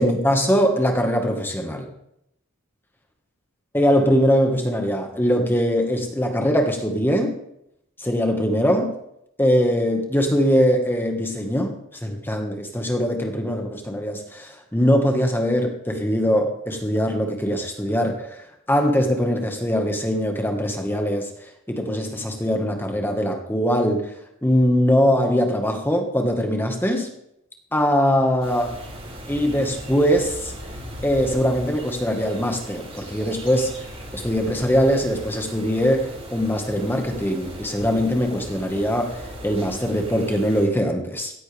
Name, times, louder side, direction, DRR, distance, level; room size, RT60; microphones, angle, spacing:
voice 1, 0.0-1.9 3.7-7.4 8.0-8.9 9.4-18.3 18.7-21.3 21.7-24.1 24.4-27.1 27.7-28.7 29.3-30.5 31.0-33.8 34.1-41.3, equal, 10° left, 3 dB, 1.6 m, -22 dB
sound 1, 28.4-40.6, equal, 30° right, 6.2 m, -38 dB
16.5 x 14.5 x 3.5 m, 0.78 s
head